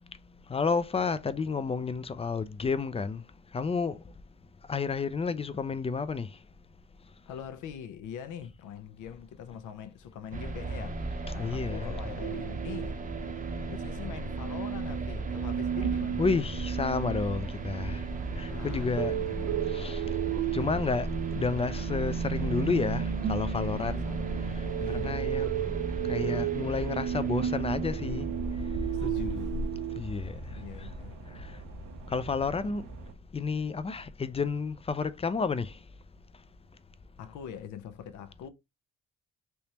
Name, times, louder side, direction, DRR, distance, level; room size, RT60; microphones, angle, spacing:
voice 1, 0.5-3.2 3.5-4.0 4.7-6.3 11.4-11.9 16.2-18.0 18.4-19.1 19.7-20.0 20.5-21.1 21.3-24.1 24.9-25.5 26.1-28.3 30.0-30.5 31.4-31.5 32.1-32.9 33.3-35.7, left 4 dB, 20° left, 0.3 m, -31 dB
voice 2, 7.3-13.0 13.7-16.2 18.4-19.6 23.8-24.3 24.6-25.2 28.9-29.7 30.5-31.2 37.2-38.5, left 8 dB, 80° left, 0.6 m, -42 dB
sound 1, 10.3-29.3, right 2 dB, 25° right, 0.7 m, -36 dB
sound 2, 12.2-30.0, right 10 dB, 70° right, 0.5 m, -34 dB
sound 3, 17.4-33.1, right 1 dB, 90° right, 0.8 m, -42 dB
3.4 x 2.9 x 2.8 m
cardioid pair, 90°, 30 cm